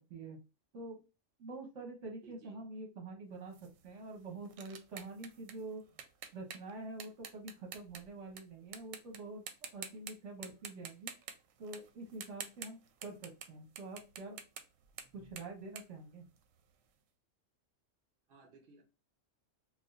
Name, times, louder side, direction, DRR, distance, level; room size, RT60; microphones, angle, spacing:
voice 1, 1.4-5.8 6.3-11.1 11.6-14.4 15.1-16.2, right 2 dB, 70° right, 1 dB, 1.3 m, -46 dB
voice 2, 2.2-2.6 7.1-7.2 18.3-18.8, right 4 dB, 50° right, 1 dB, 0.9 m, -59 dB
sound 1, 3.5-8.4 8.7-9.2 9.5-10.1 10.4-13.5 13.8-16.8, right 8 dB, 85° right, 1.0 m, -48 dB
4.8 x 2.1 x 2.3 m, 0.31 s
omnidirectional pair, 1.3 m